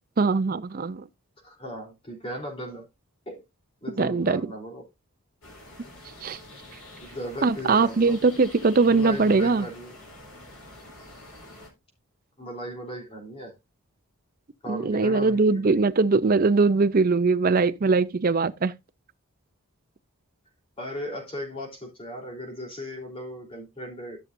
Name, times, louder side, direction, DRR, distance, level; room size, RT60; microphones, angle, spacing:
voice 1, 0.2-1.0 4.0-4.4 6.2-6.4 7.4-9.7 14.7-18.7, right 4 dB, 40° right, 0.5 m, -21 dB
voice 2, 1.4-2.9 3.3-3.4 3.8-4.9 7.0-8.2 8.8-9.9 12.4-13.5 14.6-15.8 20.8-24.2, equal, 25° left, 3.6 m, -37 dB
sound 1, 5.4-11.7, left 1 dB, 80° left, 3.8 m, -47 dB
13.5 x 6.7 x 2.6 m
head